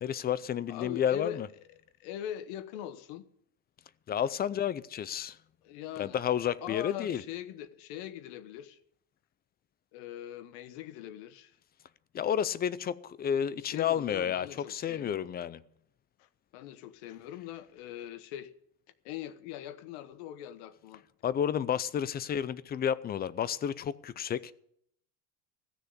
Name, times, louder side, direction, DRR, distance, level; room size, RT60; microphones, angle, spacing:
voice 1, 0.0-1.5 4.1-5.4 6.0-7.2 12.1-15.6 21.2-24.5, left 9 dB, 25° left, 0.4 m, -31 dB
voice 2, 0.7-1.4 2.0-3.2 5.6-6.2 6.6-8.8 9.9-11.6 13.7-15.3 16.2-18.5 19.0-21.0, left 11 dB, 85° left, 1.2 m, -42 dB
15.0 x 6.8 x 9.7 m
cardioid pair, 145°, 38 cm